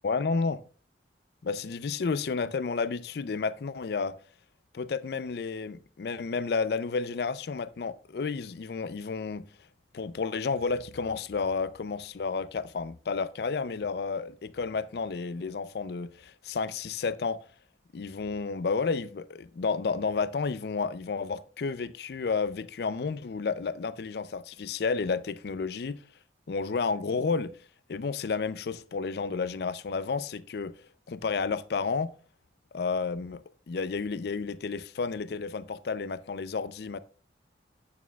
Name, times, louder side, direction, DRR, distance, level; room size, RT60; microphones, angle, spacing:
voice 1, 0.0-0.6 1.4-4.2 4.7-9.5 9.9-17.4 17.9-26.0 26.5-27.5 27.9-30.7 31.1-32.1 32.7-37.0, left 4 dB, 60° left, 0.4 m, -31 dB
9.2 x 8.5 x 2.3 m
head